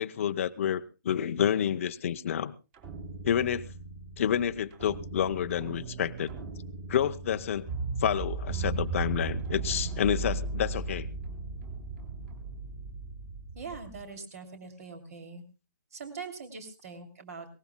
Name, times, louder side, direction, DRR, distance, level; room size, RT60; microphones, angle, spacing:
voice 1, 0.0-2.5 3.2-3.6 4.2-6.3 6.9-7.7 8.0-11.1, left 9 dB, 40° left, 10 dB, 0.7 m, -29 dB
sound 1, 2.7-14.0, right 4 dB, 25° right, 3.2 m, -36 dB
voice 2, 13.5-15.4 15.9-17.5, right 4 dB, 45° right, 7 dB, 2.9 m, -42 dB
22.5 x 18.5 x 2.2 m, 0.30 s
hypercardioid pair, 165°, 11 cm